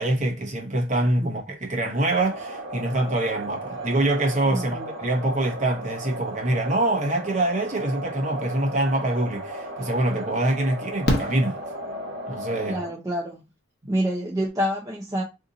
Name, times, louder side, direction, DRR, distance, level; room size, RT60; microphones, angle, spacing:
voice 1, 0.0-11.6 12.3-12.8, right 1 dB, 35° right, 0.9 m, -25 dB
sound 1, 2.2-12.9, right 1 dB, 75° right, 1.0 m, -35 dB
voice 2, 4.5-4.9 12.7-13.4 13.9-15.2, equal, 15° right, 0.5 m, -27 dB
Fireworks, 9.4-9.5 11.0-12.4 14.1-14.2 14.4-14.5, left 1 dB, 50° left, 0.8 m, -28 dB
2.7 x 2.5 x 3.8 m
head